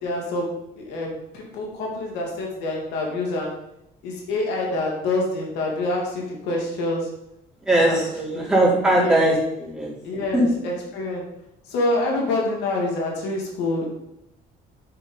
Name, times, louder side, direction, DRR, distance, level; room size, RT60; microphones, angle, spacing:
voice 1, 0.0-3.5 4.0-7.1 7.8-8.0 8.3-8.5 9.0-9.3 10.0-11.2 11.7-13.9, left 2 dB, 90° left, -1 dB, 2.9 m, -26 dB
voice 2, 7.6-9.9 10.3-10.4, right 1 dB, 5° right, -6 dB, 4.3 m, -20 dB
8.7 x 6.8 x 5.7 m, 0.85 s
cardioid pair, 110°, 17 cm